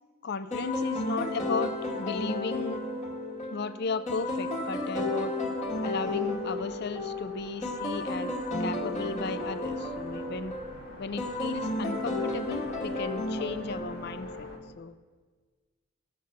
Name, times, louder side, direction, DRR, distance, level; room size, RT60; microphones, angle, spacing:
voice 1, 0.2-1.7 2.0-2.8 3.5-5.3 5.8-8.3 8.6-10.5 11.0-14.5 14.8-14.9, left 4 dB, 55° left, 13 dB, 0.5 m, -35 dB
sound 1, 0.5-14.7, left 2 dB, 35° left, 1.6 m, -33 dB
sound 2, 5.6-14.6, left 1 dB, 80° left, 1.3 m, -49 dB
16.5 x 6.6 x 6.6 m, 1.4 s
head